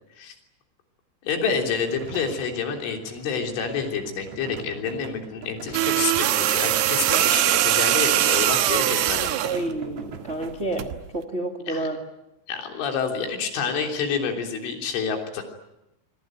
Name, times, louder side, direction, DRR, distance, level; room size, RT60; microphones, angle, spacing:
voice 1, 1.2-9.3 11.7-11.9 12.5-15.4, left 6 dB, 85° left, 3 dB, 5.9 m, -28 dB
sound 1, 1.5-7.6 8.0-10.8, right 5 dB, 45° right, 2.1 m, -42 dB
sound 2, 5.7-9.6 10.8-11.0, right 13 dB, 70° right, 2.8 m, -21 dB
voice 2, 9.4-12.0, right 2 dB, 25° right, 3 dB, 1.4 m, -29 dB
26.0 x 24.0 x 9.2 m, 0.91 s
omnidirectional pair, 5.4 m